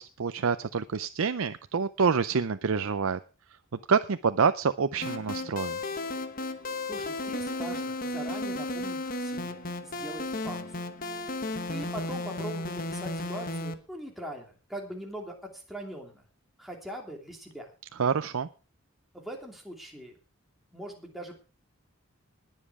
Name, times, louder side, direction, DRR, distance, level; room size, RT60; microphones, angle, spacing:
voice 1, 0.0-3.2 3.9-5.8 18.0-18.5, right 5 dB, 75° right, 11 dB, 0.6 m, -27 dB
sound 1, 5.0-13.7, left 2 dB, 40° left, 1.1 m, -34 dB
voice 2, 6.9-10.7 11.3-16.3 16.6-17.7 19.1-20.2 20.7-21.3, right 1 dB, ahead, 0 dB, 2.8 m, -41 dB
20.5 x 7.5 x 4.8 m, 0.36 s
head